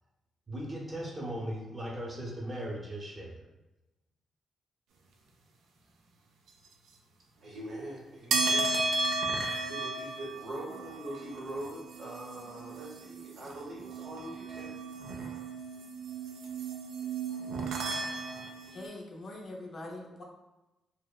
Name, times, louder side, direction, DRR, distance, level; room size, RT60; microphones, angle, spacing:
voice 1, 0.5-3.5, equal, 25° right, -3 dB, 0.6 m, -38 dB
voice 2, 7.4-8.8 9.1-9.4 9.7-14.8, right 1 dB, 60° right, -3 dB, 0.8 m, -42 dB
sound 1, 8.3-18.8, right 3 dB, 85° right, 0.3 m, -34 dB
voice 3, 18.7-20.2, left 2 dB, 50° left, -1 dB, 0.5 m, -43 dB
2.8 x 2.0 x 2.3 m, 1.0 s
cardioid pair, 105°, 0 cm